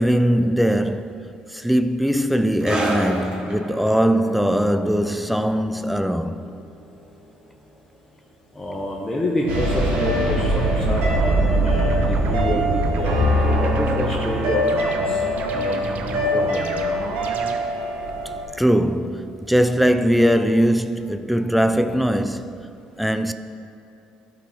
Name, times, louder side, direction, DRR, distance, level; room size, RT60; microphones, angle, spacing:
voice 1, 0.0-6.4 18.6-22.6 23.0-23.3, equal, ahead, 0.3 m, -20 dB
sound 1, 2.6-9.6 9.8-10.1 10.8-10.9, right 1 dB, 30° right, 1.5 m, -32 dB
voice 2, 8.5-14.7 14.9-16.7, left 1 dB, 15° left, 1.1 m, -27 dB
sound 2, 9.4-17.6, right 5 dB, 65° right, 0.6 m, -32 dB
sound 3, 9.5-18.4, equal, 80° right, 1.6 m, -22 dB
11.5 x 4.2 x 3.5 m
supercardioid pair, 75°, 3 cm